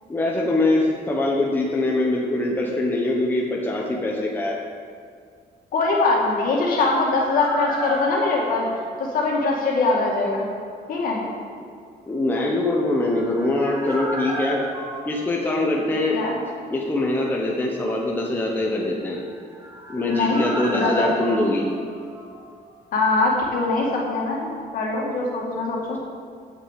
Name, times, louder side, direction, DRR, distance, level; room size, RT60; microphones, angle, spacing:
voice 1, 0.1-4.6 12.1-14.6 15.0-16.2 16.7-19.2 19.9-21.7, left 2 dB, 10° left, -2 dB, 0.9 m, -23 dB
voice 2, 5.7-8.7 9.0-10.5 10.9-11.2 16.1-16.4 20.1-20.4 20.7-21.1 22.9-26.0, left 3 dB, 60° left, -2 dB, 2.2 m, -22 dB
sound 1, 6.5-9.9 10.2-10.3 12.7-16.4 16.7-16.8 19.0-22.9 23.1-23.2, right 1 dB, 20° right, 1.4 m, -34 dB
8.2 x 6.8 x 7.5 m, 2.1 s
cardioid pair, 175°, 16 cm